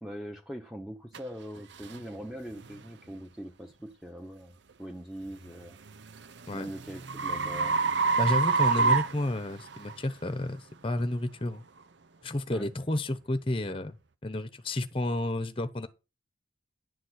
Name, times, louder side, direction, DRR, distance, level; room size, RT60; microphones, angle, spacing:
voice 1, 0.0-5.8 6.5-7.8 8.8-9.0 12.5-12.7, equal, ahead, 1.0 m, -42 dB
sound 1, 1.1-1.2 1.8-2.0 2.6-2.8 5.5-9.9, right 4 dB, 70° right, 0.8 m, -27 dB
voice 2, 8.2-11.6 12.2-14.0 14.2-15.9, left 1 dB, 30° left, 0.8 m, -31 dB
11.0 x 4.3 x 7.9 m
head